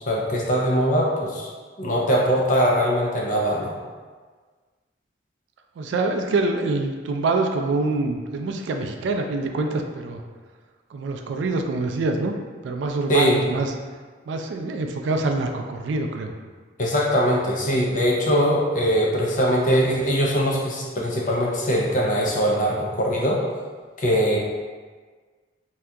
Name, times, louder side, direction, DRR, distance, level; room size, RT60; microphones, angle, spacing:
voice 1, 0.1-1.5 1.8-3.7 13.1-13.4 16.8-23.4 24.0-24.4, equal, 40° left, -3 dB, 0.5 m, -21 dB
voice 2, 5.8-10.2 10.9-12.3 12.6-13.7 14.3-16.3, right 3 dB, 75° right, 4 dB, 0.3 m, -25 dB
2.7 x 2.3 x 3.4 m, 1.5 s
head